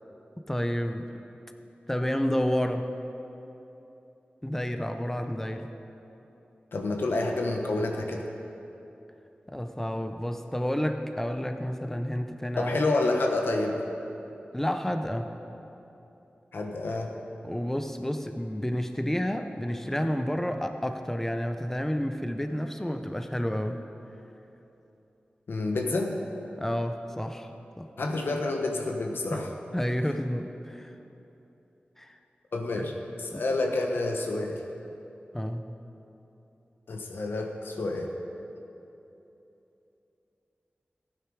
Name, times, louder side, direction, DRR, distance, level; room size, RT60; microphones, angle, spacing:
voice 1, 0.5-1.0 1.9-2.9 4.4-5.7 9.5-12.8 14.5-15.3 17.4-23.8 26.6-27.5 27.8-27.9 29.3-29.4 29.7-30.9 32.0-32.1 32.7-32.9 33.3-33.4 35.3-35.6, equal, 10° left, 7 dB, 0.7 m, -30 dB
voice 2, 6.7-8.2 12.5-13.8 16.5-17.1 25.5-26.1 28.0-29.5 32.5-34.6 36.9-38.1, left 2 dB, 90° left, 2 dB, 1.2 m, -28 dB
15.0 x 9.2 x 4.9 m, 3.0 s
wide cardioid pair, 70°, 4 cm